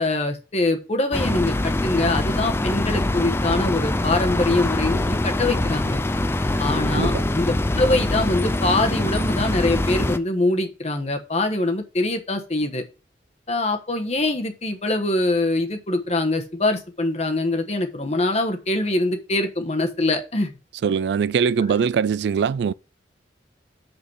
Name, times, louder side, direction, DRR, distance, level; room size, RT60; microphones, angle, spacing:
voice 1, 0.0-6.0 6.6-12.8 13.5-20.5, left 2 dB, 35° left, 1.2 m, -23 dB
sound 1, 1.1-10.2, left 1 dB, 15° left, 0.4 m, -23 dB
voice 2, 6.9-7.2 20.8-22.7, right 6 dB, 65° right, 0.3 m, -22 dB
6.3 x 5.4 x 5.4 m
head